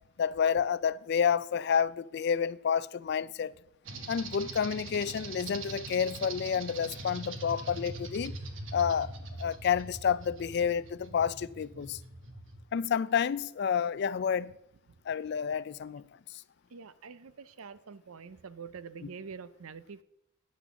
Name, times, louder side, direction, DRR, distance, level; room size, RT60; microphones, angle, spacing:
voice 1, 0.2-3.5 4.1-8.3 8.7-9.1 9.4-12.0 12.7-14.5 15.1-16.0 19.0-19.1, left 7 dB, 50° left, 0.3 m, -29 dB
sound 1, 3.9-12.6, right 2 dB, 60° right, 1.2 m, -42 dB
voice 2, 16.7-20.0, right 5 dB, 80° right, 0.6 m, -46 dB
10.5 x 6.1 x 7.0 m
head